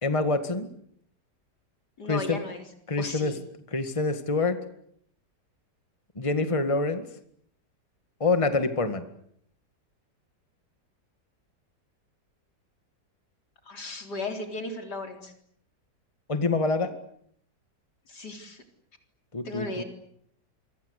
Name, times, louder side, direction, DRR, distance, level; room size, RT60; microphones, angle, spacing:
voice 1, 0.0-0.7 2.1-2.4 2.9-3.3 3.7-4.6 6.2-7.0 8.2-9.0 16.3-16.9 19.3-19.8, left 3 dB, 20° left, 9 dB, 1.9 m, -26 dB
voice 2, 2.0-2.6 3.0-3.4 13.7-15.3 18.1-18.6 19.4-19.8, left 2 dB, 70° left, 5 dB, 4.4 m, -35 dB
27.5 x 25.0 x 8.3 m, 0.69 s
omnidirectional pair, 1.8 m